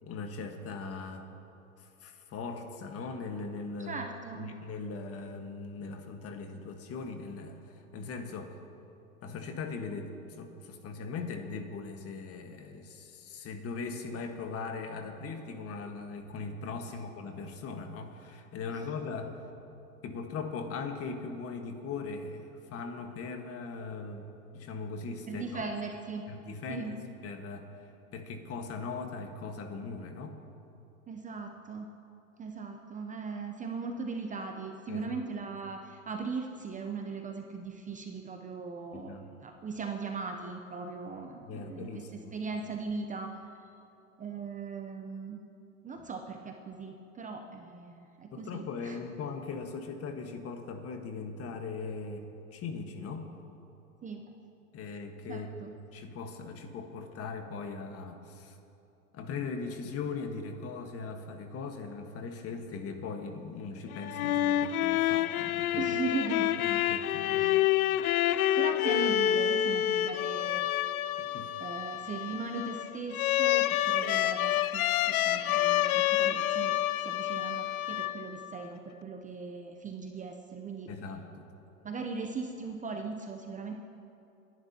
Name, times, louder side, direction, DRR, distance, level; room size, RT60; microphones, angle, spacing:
voice 1, 0.0-1.3 1.8-4.0 4.3-8.5 9.2-19.5 20.0-25.6 26.3-26.9 27.2-30.4 34.9-35.1 38.9-39.3 41.4-42.1 48.3-53.3 54.7-58.6 59.1-65.9 66.6-67.6 71.2-71.5 80.9-81.4, left 4 dB, 35° left, 5 dB, 1.5 m, -40 dB
voice 2, 3.8-4.5 25.2-26.2 26.7-26.9 31.1-31.9 32.4-41.9 42.3-43.6 44.2-45.4 45.8-49.0 54.0-54.3 55.3-55.7 65.8-66.5 67.2-67.6 68.6-70.7 71.0-71.3 71.6-80.9 81.8-83.7, right 4 dB, 20° right, 3 dB, 0.7 m, -39 dB
sound 1, 63.9-78.6, left 12 dB, 80° left, 0.6 m, -28 dB
28.0 x 11.0 x 2.9 m, 2.8 s
hypercardioid pair, 110°, 43 cm